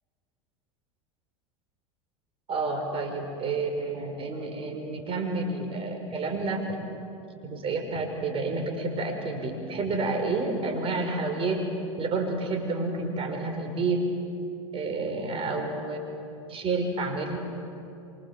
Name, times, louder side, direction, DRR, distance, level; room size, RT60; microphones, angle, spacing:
voice 1, 2.5-6.6 7.4-11.6 12.0-14.1 14.7-16.0 16.5-17.4, right 3 dB, 35° right, 4 dB, 5.4 m, -29 dB
25.5 x 25.0 x 7.5 m, 2.7 s
hypercardioid pair, 85°, 16 cm